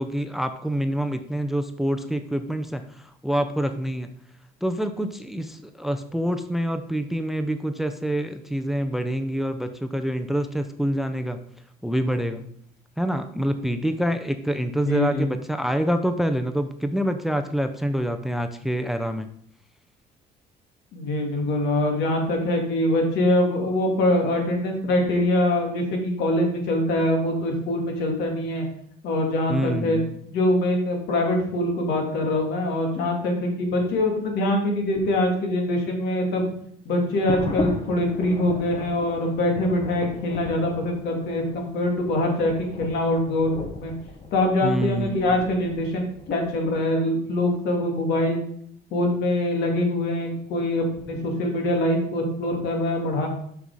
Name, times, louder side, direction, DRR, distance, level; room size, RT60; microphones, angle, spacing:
voice 1, 0.0-4.1 4.6-11.4 11.8-12.4 13.0-19.3 29.5-30.1 44.6-45.3, equal, ahead, 8 dB, 0.5 m, -26 dB
voice 2, 14.9-15.3 20.9-28.6 29.0-36.5 36.9-42.5 42.8-43.9 44.3-48.4 48.9-53.3, left 1 dB, 80° left, 2 dB, 2.1 m, -24 dB
sound 1, 37.1-46.5, left 3 dB, 35° left, 1.2 m, -36 dB
6.1 x 5.5 x 4.7 m, 0.66 s
cardioid pair, 110°, 17 cm